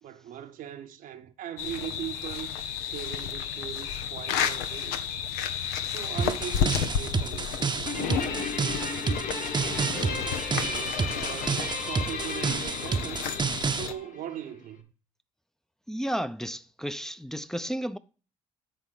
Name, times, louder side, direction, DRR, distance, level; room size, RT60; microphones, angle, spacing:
voice 1, 0.0-2.5 2.8-5.2 5.8-8.3 9.6-13.3 13.7-14.9, right 10 dB, 65° right, 0.9 m, -40 dB
sound 1, 1.6-13.9, left 8 dB, 75° left, 0.7 m, -32 dB
sound 2, 6.2-13.9, right 5 dB, 30° right, 0.8 m, -30 dB
Guitar, 7.9-14.5, left 4 dB, 55° left, 1.5 m, -36 dB
voice 2, 15.9-18.0, equal, 5° left, 0.6 m, -32 dB
10.0 x 4.0 x 5.8 m
hypercardioid pair, 50°, 15 cm